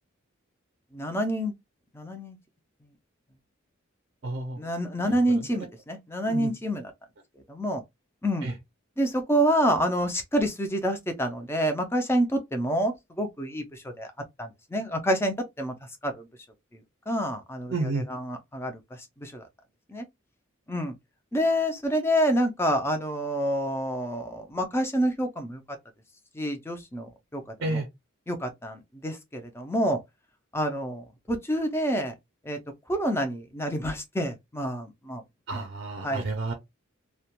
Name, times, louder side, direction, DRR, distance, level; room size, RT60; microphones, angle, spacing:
voice 1, 0.9-1.5 1.9-2.4 4.6-6.9 7.5-7.8 8.2-8.5 9.0-14.1 14.4-15.7 16.0-16.3 16.7-17.7 18.1-19.4 19.9-20.1 20.7-20.9 21.3-25.6 26.3-27.8 28.3-30.0 30.5-32.1 32.4-32.6 32.9-35.2 35.5-35.6 36.0-36.2, equal, 10° left, 0.4 m, -28 dB
voice 2, 4.2-4.6 5.0-5.7 6.3-6.5 8.4-8.5 17.7-18.1 27.6-27.9 35.5-36.5, right 2 dB, 50° right, 0.5 m, -31 dB
2.3 x 2.1 x 2.8 m
head